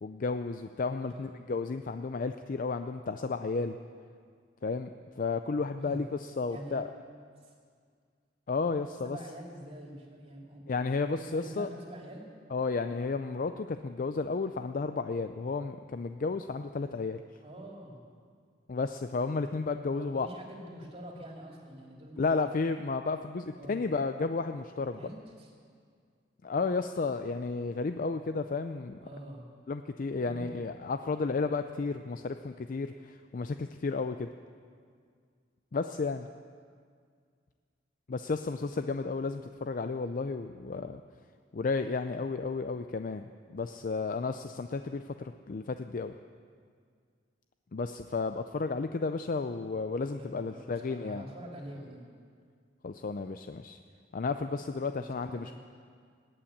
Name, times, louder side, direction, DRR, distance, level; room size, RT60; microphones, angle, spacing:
voice 1, 0.0-3.8 4.6-6.9 8.5-9.2 10.7-11.7 12.5-17.2 18.7-20.3 22.2-25.0 26.4-29.0 29.7-34.3 35.7-36.3 38.1-41.0 41.5-46.1 47.7-51.3 52.8-53.8 54.1-55.5, left 4 dB, 45° left, 9 dB, 0.4 m, -32 dB
voice 2, 9.0-10.6 11.1-12.2 17.4-18.0 19.9-22.5 23.5-23.8 25.0-25.5 29.0-29.4 30.2-30.6 50.1-52.1 54.9-55.5, right 1 dB, 35° right, 0 dB, 2.7 m, -46 dB
19.0 x 8.7 x 8.5 m, 2.1 s
head